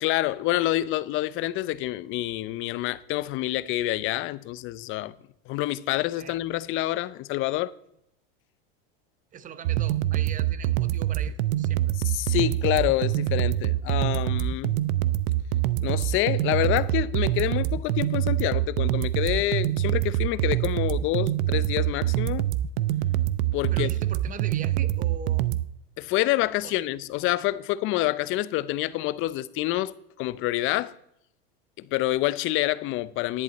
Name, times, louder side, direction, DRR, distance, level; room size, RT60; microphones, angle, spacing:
voice 1, 0.0-5.1 5.5-7.7 12.0-14.8 15.8-22.5 23.5-23.9 26.0-30.9 31.8-33.4, left 16 dB, 45° left, 0.6 m, -27 dB
voice 2, 9.3-12.0 23.7-25.5 26.6-26.7, right 8 dB, 25° right, 0.9 m, -41 dB
sound 1, 9.6-25.6, right 14 dB, 65° right, 0.7 m, -25 dB
11.0 x 10.5 x 4.1 m
supercardioid pair, 120°, 30 cm